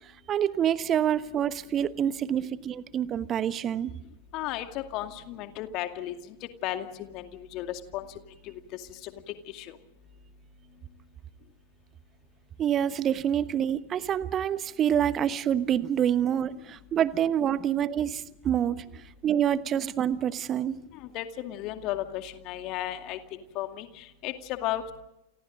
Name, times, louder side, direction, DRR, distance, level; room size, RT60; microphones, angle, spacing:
voice 1, 0.3-3.9 12.6-18.8 19.2-20.8, right 9 dB, 30° right, 16 dB, 1.1 m, -27 dB
voice 2, 4.3-6.1 6.6-6.9 7.1-8.0 9.5-9.8 21.1-23.2 23.6-23.9 24.2-24.9, left 13 dB, 40° left, 7 dB, 2.3 m, -34 dB
29.0 x 28.5 x 3.9 m, 0.91 s
figure-of-eight pair, 90°, 0 cm